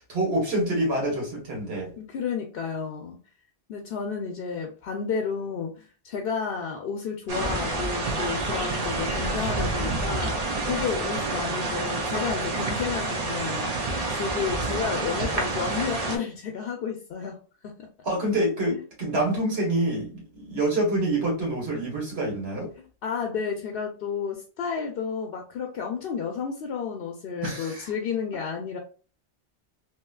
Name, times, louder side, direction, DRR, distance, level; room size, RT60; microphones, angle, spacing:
voice 1, 0.0-1.9 18.0-22.7 27.4-27.9, right 1 dB, 70° right, -1 dB, 1.5 m, -26 dB
voice 2, 2.0-3.2 3.7-13.7 14.1-17.4 17.6-17.7 18.7-18.8 23.0-28.8, left 6 dB, 65° left, 2 dB, 0.7 m, -31 dB
sound 1, 7.3-16.2, right 2 dB, 40° right, 0.7 m, -28 dB
2.8 x 2.7 x 2.3 m, 0.37 s
omnidirectional pair, 1.1 m